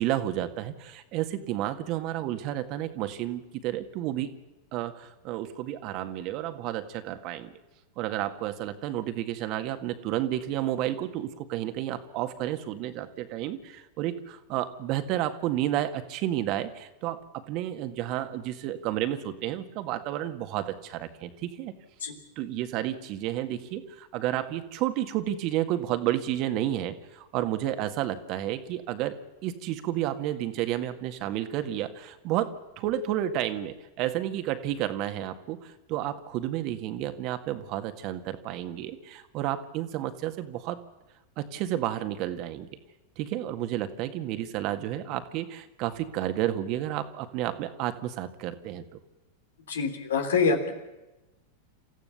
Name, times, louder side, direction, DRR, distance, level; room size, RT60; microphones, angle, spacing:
voice 1, 0.0-4.3 4.7-7.5 8.0-21.7 22.4-40.8 41.4-42.7 43.2-49.0, right 13 dB, 50° right, 9 dB, 1.8 m, -31 dB
voice 2, 49.7-50.8, left 5 dB, 75° left, 6 dB, 3.1 m, -25 dB
28.0 x 15.0 x 7.1 m, 1.0 s
hypercardioid pair, 95°, 0 cm